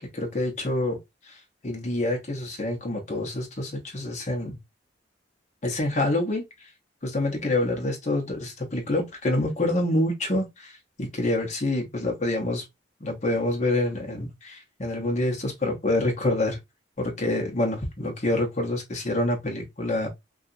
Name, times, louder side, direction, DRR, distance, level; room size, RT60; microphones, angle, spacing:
voice 1, 0.1-4.6 5.6-6.7 7.0-12.6 13.0-16.6 17.0-20.1, left 1 dB, 35° left, 0.8 m, -27 dB
2.8 x 2.4 x 2.5 m
head